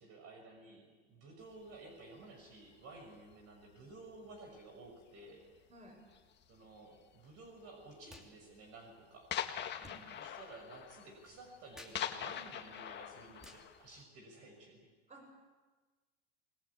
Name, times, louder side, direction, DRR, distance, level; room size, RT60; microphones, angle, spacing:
voice 1, 0.0-5.5 6.5-9.3 10.1-14.9, right 2 dB, 45° right, 3 dB, 6.2 m, -54 dB
sound 1, 1.7-1.9 2.6-3.1 3.3-3.8 4.1-4.4 4.9-5.0 5.2-5.3 6.1-6.5 7.4-7.5 7.8-7.9 8.3-8.4 8.7-8.8 9.3-14.0, left 9 dB, 30° left, 2.0 m, -43 dB
voice 2, 5.7-6.0 9.8-10.0 15.1-15.3, right 1 dB, 20° right, 3 dB, 7.4 m, -55 dB
sound 2, 8.1-8.3 8.6-14.8, left 1 dB, ahead, 3.0 m, -61 dB
27.0 x 21.0 x 8.4 m, 1.3 s
supercardioid pair, 125°, 35 cm